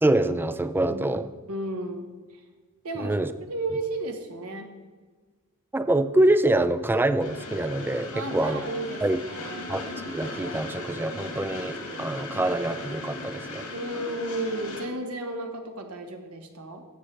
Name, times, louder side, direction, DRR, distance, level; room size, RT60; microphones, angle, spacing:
voice 1, 0.0-1.3 3.0-3.3 5.7-8.6 9.0-9.2 9.7-13.7, right 1 dB, 10° right, 12 dB, 0.3 m, -25 dB
voice 2, 1.5-2.1 2.8-3.1 3.5-4.7 8.1-9.7 13.7-16.8, right 2 dB, 75° right, 4 dB, 1.2 m, -33 dB
Train, 7.2-14.8, left 2 dB, 75° left, 2.1 m, -37 dB
13.5 x 7.5 x 3.3 m, 1.4 s
head